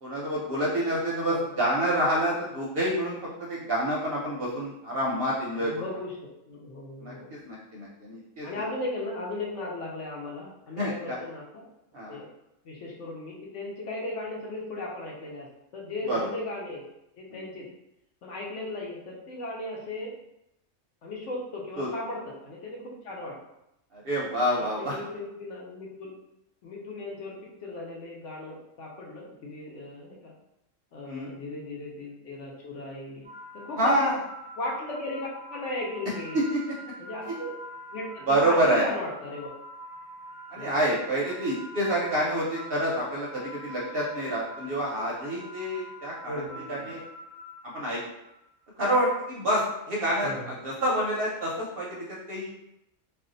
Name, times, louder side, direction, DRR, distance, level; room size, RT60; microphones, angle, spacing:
voice 1, 0.0-5.7 7.0-7.1 7.5-8.5 10.8-11.2 11.9-12.2 16.1-16.3 21.8-21.9 23.9-25.0 31.0-31.3 33.8-34.1 36.5-36.6 38.3-38.9 40.5-47.0 47.7-48.0 48.8-49.6 49.9-52.5, right 1 dB, 55° right, -4 dB, 0.7 m, -27 dB
voice 2, 1.2-1.5 5.5-7.4 8.4-11.7 12.1-12.3 12.6-15.5 15.7-16.8 17.2-17.7 18.2-20.1 21.0-23.4 24.6-26.1 26.6-30.3 30.9-33.3 33.5-34.1 34.6-36.4 37.0-37.5 37.9-39.5 40.5-40.7 46.3-47.0 50.2-50.5, left 2 dB, 65° left, -2 dB, 0.9 m, -37 dB
sound 1, 33.2-48.4, equal, 10° left, 0.5 m, -45 dB
2.5 x 2.1 x 3.7 m, 0.85 s
omnidirectional pair, 1.4 m